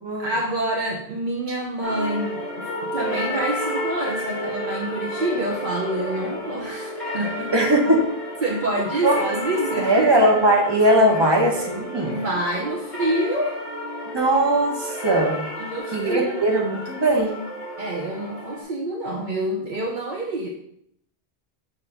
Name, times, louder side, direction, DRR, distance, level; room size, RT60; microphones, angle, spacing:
voice 1, 0.2-7.5 8.4-10.3 12.0-13.6 15.6-16.5 17.8-20.5, right 1 dB, 55° right, -2 dB, 0.9 m, -27 dB
sound 1, 1.8-18.6, equal, 50° left, 2.0 m, -31 dB
voice 2, 7.5-8.1 9.0-9.2 9.8-12.1 14.1-15.4 15.9-17.3, right 1 dB, 25° right, -1 dB, 1.2 m, -19 dB
6.9 x 2.9 x 5.0 m, 0.71 s
omnidirectional pair, 1.0 m